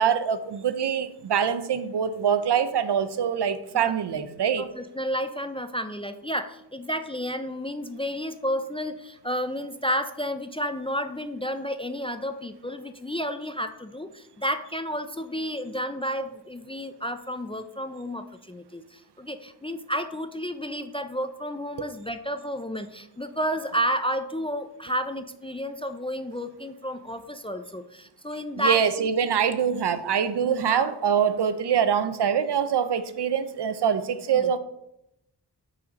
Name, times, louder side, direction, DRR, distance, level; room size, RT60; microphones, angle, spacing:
voice 1, 0.0-4.6 28.6-34.6, right 8 dB, 70° right, 12 dB, 0.6 m, -24 dB
voice 2, 4.6-29.1 30.4-30.9 34.3-34.5, equal, 15° left, 9 dB, 0.3 m, -31 dB
5.5 x 4.2 x 5.1 m, 0.83 s
wide cardioid pair, 70°, 42 cm